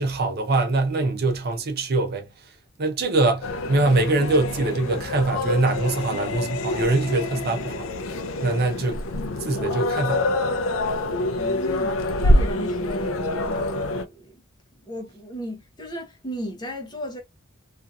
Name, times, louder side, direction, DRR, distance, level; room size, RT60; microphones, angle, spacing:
voice 1, 0.0-2.3 2.8-7.9 8.4-9.0 9.4-10.3, right 2 dB, 50° right, 0.6 m, -23 dB
sound 1, 3.4-14.1, left 1 dB, 65° left, 0.4 m, -26 dB
voice 2, 11.3-14.4 14.8-17.2, equal, 20° left, 0.7 m, -35 dB
2.7 x 2.4 x 2.3 m
head